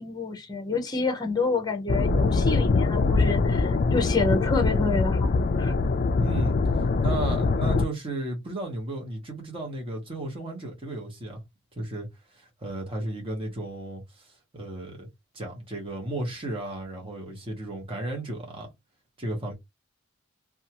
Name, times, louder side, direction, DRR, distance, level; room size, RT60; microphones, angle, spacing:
voice 1, 0.0-5.3 5.6-5.7, left 3 dB, 20° left, 0.7 m, -28 dB
sound 1, 1.9-7.8, left 3 dB, 40° left, 0.3 m, -23 dB
voice 2, 6.2-11.4 11.8-12.1 12.3-15.1 15.3-18.7 19.2-19.5, right 2 dB, 25° right, 1.1 m, -34 dB
2.6 x 2.3 x 2.8 m
head